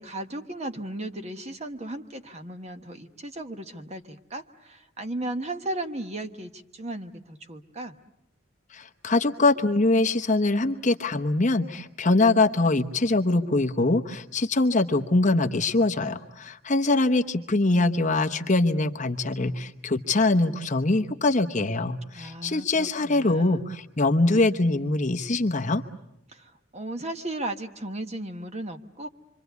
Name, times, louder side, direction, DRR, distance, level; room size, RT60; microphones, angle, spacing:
voice 1, 0.0-8.0 22.1-23.7 26.3-29.1, right 1 dB, 30° right, 7 dB, 1.2 m, -36 dB
voice 2, 8.7-25.8, left 2 dB, 35° left, 6 dB, 1.0 m, -23 dB
26.5 x 25.5 x 8.2 m, 0.84 s
head